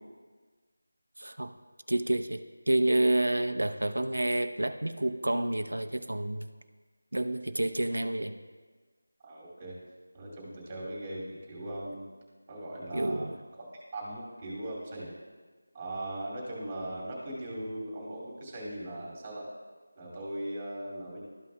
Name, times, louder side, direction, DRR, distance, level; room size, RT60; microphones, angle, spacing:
voice 1, 1.2-1.5 1.9-2.4 2.7-6.5 7.1-8.4 12.9-13.4, right 1 dB, 85° right, 9 dB, 0.7 m, -29 dB
voice 2, 9.2-9.7 10.1-12.0 12.5-13.6 13.9-15.1 15.7-19.5 20.0-21.2, right 1 dB, 20° right, -4 dB, 2.3 m, -39 dB
13.5 x 5.7 x 2.2 m, 1.4 s
figure-of-eight pair, 170°, 0 cm